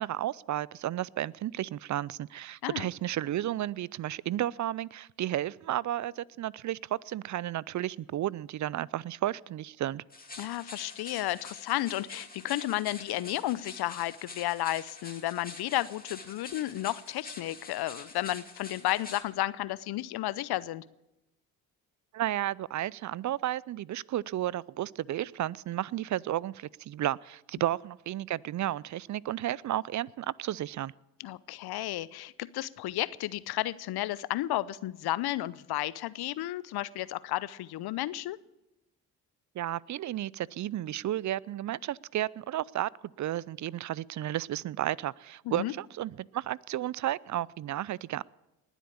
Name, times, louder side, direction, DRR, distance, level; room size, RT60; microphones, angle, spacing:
voice 1, 0.0-10.0 22.1-30.9 39.6-42.9 43.2-48.2, right 13 dB, 45° right, 24 dB, 0.5 m, -33 dB
sound 1, 10.1-19.2, left 3 dB, 20° left, 2.7 m, -47 dB
voice 2, 10.4-20.8 31.2-38.4 45.5-45.7, left 15 dB, 65° left, 19 dB, 0.7 m, -32 dB
20.0 x 8.1 x 8.6 m, 0.95 s
hypercardioid pair, 50°, 42 cm